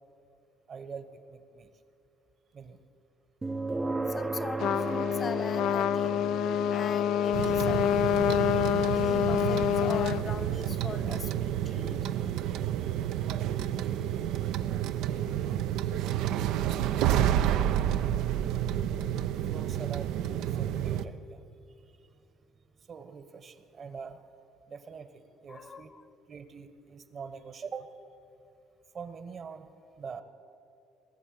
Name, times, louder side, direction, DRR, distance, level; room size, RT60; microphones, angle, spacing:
voice 1, 0.7-1.7 2.5-2.8 17.3-17.7 19.5-21.4 21.8-21.9 22.9-24.2 24.7-25.9 26.3-27.9 28.9-29.7 30.0-30.2, right 5 dB, 45° right, 11 dB, 1.2 m, -44 dB
sound 1, 3.4-18.4, right 3 dB, 20° right, 0.6 m, -39 dB
voice 2, 4.1-6.2 6.7-8.6 8.9-12.0 25.5-26.2, left 5 dB, 35° left, 12 dB, 0.8 m, -41 dB
Trumpet, 4.6-10.2, left 11 dB, 65° left, 0.4 m, -27 dB
sound 2, 7.3-21.0, right 11 dB, 70° right, 0.5 m, -30 dB
18.5 x 7.3 x 8.9 m, 2.6 s
supercardioid pair, 75°, 0 cm